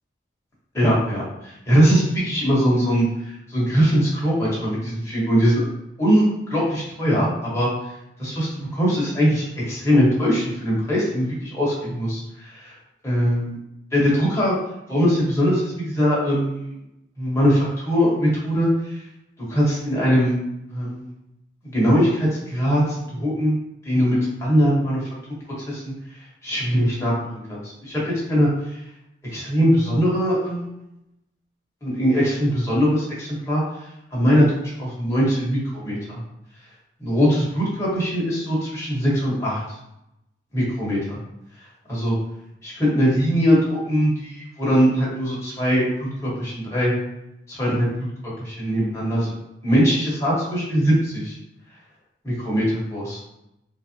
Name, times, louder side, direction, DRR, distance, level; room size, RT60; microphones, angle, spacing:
voice 1, 0.7-5.6 6.0-7.7 8.2-12.6 13.0-13.6 13.9-14.5 14.9-16.7 17.2-19.0 19.5-20.4 20.7-21.1 21.6-23.6 23.8-25.1 25.6-28.8 29.3-30.7 31.8-34.5 34.8-36.2 37.0-39.8 40.5-41.2 41.6-42.2 42.6-46.9 47.5-47.9 48.4-49.3 49.6-51.3 52.2-53.3, equal, 15° left, -7 dB, 1.3 m, -21 dB
3.6 x 2.7 x 2.9 m, 0.86 s
head